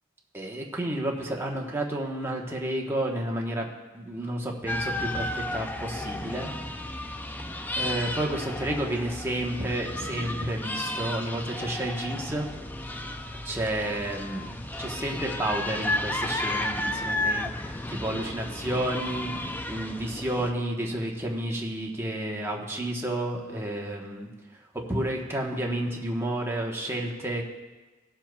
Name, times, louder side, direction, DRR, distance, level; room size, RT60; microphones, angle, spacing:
voice 1, 0.3-3.7 3.9-6.5 7.8-12.5 13.4-24.3 24.7-27.4, right 1 dB, 10° right, -1 dB, 1.1 m, -31 dB
sound 1, 4.7-20.5, left 1 dB, 10° left, 0.4 m, -33 dB
19.5 x 7.2 x 2.4 m, 1.2 s
head